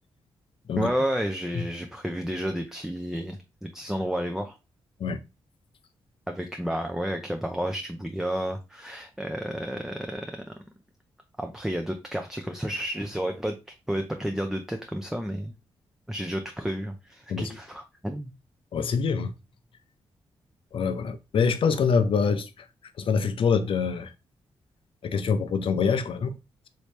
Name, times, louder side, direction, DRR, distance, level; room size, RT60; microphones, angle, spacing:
voice 1, 0.8-4.6 6.3-10.5 11.4-13.6 13.9-15.5 16.1-18.3, equal, 5° right, 0.5 m, -31 dB
voice 2, 18.7-19.3 20.7-22.5 23.0-24.1 25.0-26.3, left 5 dB, 60° left, 0.5 m, -25 dB
3.2 x 2.7 x 3.1 m
cardioid pair, 60°, 10 cm